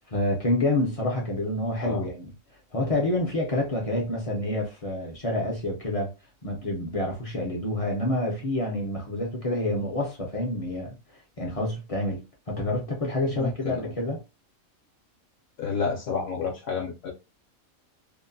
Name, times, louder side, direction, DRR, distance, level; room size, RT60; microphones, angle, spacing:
voice 1, 0.1-2.3 2.7-6.1 6.4-14.2, left 1 dB, 40° left, 0.5 m, -28 dB
voice 2, 13.3-13.9 15.6-17.1, left 5 dB, 65° left, 1.0 m, -30 dB
2.8 x 2.1 x 2.5 m
omnidirectional pair, 1.5 m